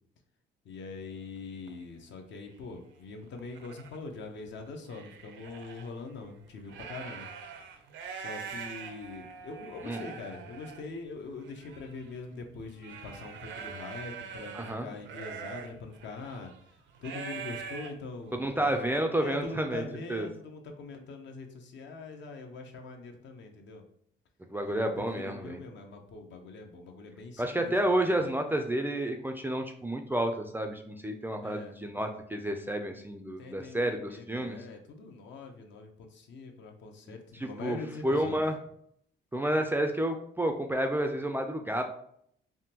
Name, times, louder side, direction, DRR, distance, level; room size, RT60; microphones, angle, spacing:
voice 1, 0.6-7.3 8.2-16.5 17.0-18.7 19.1-23.8 24.7-28.2 31.4-31.8 33.4-38.5, left 3 dB, 65° left, 4 dB, 0.6 m, -43 dB
sound 1, 1.0-1.1 1.7-1.9 2.6-2.7 3.1-4.0 4.5-5.9 6.5-19.0, right 6 dB, 70° right, 0.5 m, -43 dB
voice 2, 14.5-14.9 18.3-19.8 20.1-20.3 24.5-25.6 27.4-34.6 37.3-37.8 38.0-38.6 39.3-41.8, right 1 dB, 10° right, 5 dB, 0.3 m, -30 dB
3.5 x 2.1 x 2.8 m, 0.67 s
cardioid pair, 90°, 20 cm